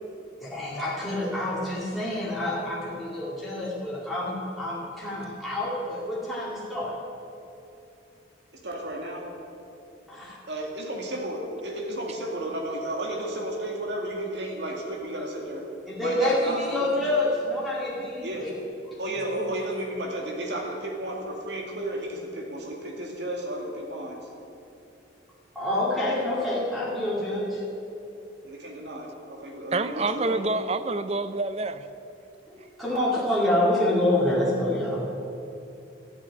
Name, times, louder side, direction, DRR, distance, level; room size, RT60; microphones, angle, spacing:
voice 1, 0.4-7.0 10.1-10.4 15.9-18.5 18.9-19.0 19.3-19.5 25.5-27.6 32.5-35.0, left 1 dB, ahead, -6 dB, 2.3 m, -27 dB
voice 2, 8.6-9.3 10.5-15.7 16.0-17.0 18.2-18.5 19.0-24.3 26.1-26.2 28.4-30.5 32.8-33.1, right 1 dB, 60° right, 0 dB, 2.3 m, -33 dB
voice 3, 29.7-31.8, right 3 dB, 35° right, 12 dB, 0.5 m, -27 dB
13.0 x 7.3 x 9.6 m, 2.8 s
head